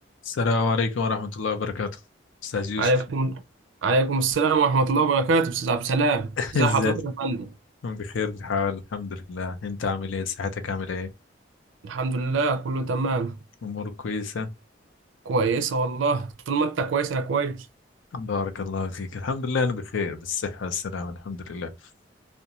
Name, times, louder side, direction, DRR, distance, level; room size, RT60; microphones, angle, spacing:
voice 1, 0.2-1.9 2.4-2.9 6.4-7.0 7.8-11.1 13.6-14.5 18.1-21.7, left 4 dB, 85° left, 0.5 m, -28 dB
voice 2, 2.8-3.4 3.8-7.5 11.8-13.4 15.3-17.6, right 3 dB, 80° right, 0.4 m, -24 dB
2.5 x 2.2 x 2.8 m
head